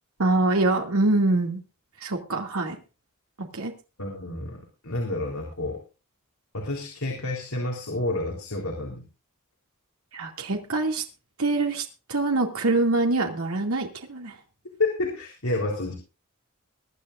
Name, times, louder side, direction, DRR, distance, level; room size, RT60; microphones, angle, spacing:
voice 1, 0.2-1.6 2.0-2.8 3.4-3.7 10.1-11.0 11.4-14.4, right 2 dB, 75° right, 2 dB, 2.4 m, -24 dB
voice 2, 4.0-5.8 6.5-9.0 14.8-15.9, left 2 dB, 75° left, 0 dB, 3.8 m, -29 dB
23.0 x 10.5 x 2.6 m, 0.32 s
head